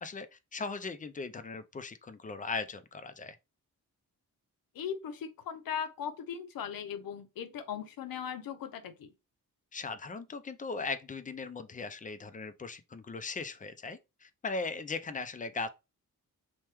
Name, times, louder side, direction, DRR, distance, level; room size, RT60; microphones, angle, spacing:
voice 1, 0.0-3.4 9.7-15.7, left 4 dB, 25° left, 0.3 m, -38 dB
voice 2, 4.7-9.1, left 8 dB, 85° left, 0.6 m, -38 dB
3.0 x 2.2 x 3.2 m
wide cardioid pair, 110°, 34 cm